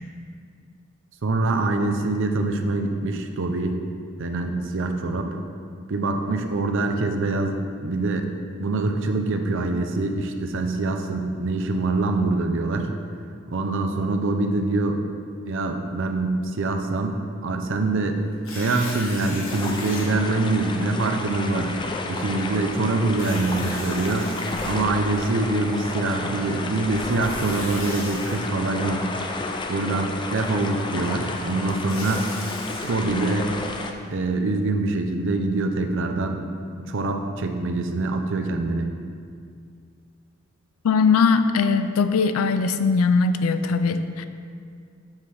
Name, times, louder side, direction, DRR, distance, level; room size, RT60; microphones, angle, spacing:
voice 1, 1.2-3.8 4.2-5.4 5.9-8.3 8.6-12.9 13.5-15.0 15.5-17.2 17.4-18.2 18.5-21.8 22.1-24.3 24.6-29.1 29.7-32.3 32.8-33.5 34.1-36.4 36.8-38.9, right 2 dB, 60° right, 5 dB, 0.6 m, -24 dB
Tearing, 18.3-20.1 20.7-20.8 23.1-25.2 27.1-28.4 31.5-32.9, left 2 dB, 65° left, 1.3 m, -37 dB
sound 1, 19.5-33.9, left 2 dB, 20° left, 0.4 m, -32 dB
voice 2, 40.8-44.3, left 4 dB, 85° left, 10 dB, 0.4 m, -20 dB
7.3 x 5.8 x 3.3 m, 2.2 s
head